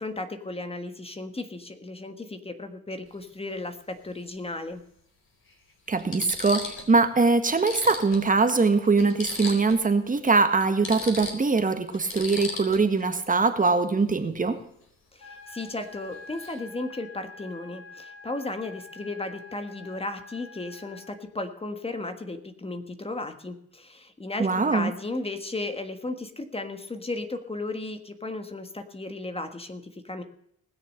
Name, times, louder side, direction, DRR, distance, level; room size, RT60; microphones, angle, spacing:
voice 1, 0.0-4.8 15.1-30.2, left 2 dB, 20° left, 7 dB, 1.5 m, -35 dB
sound 1, 3.1-3.2 4.7-4.8 5.5-5.6 6.0-6.9 7.2-7.3 7.6-9.9 10.2-10.3 10.6-13.0 15.6-15.8 16.1-16.6, left 3 dB, 45° left, 4.1 m, -37 dB
voice 2, 5.9-14.6 24.4-24.9, right 4 dB, 25° right, 8 dB, 1.6 m, -22 dB
sound 2, 15.2-21.2, left 3 dB, 60° left, 5.7 m, -47 dB
19.5 x 6.8 x 6.5 m, 0.70 s
cardioid pair, 90°, 30 cm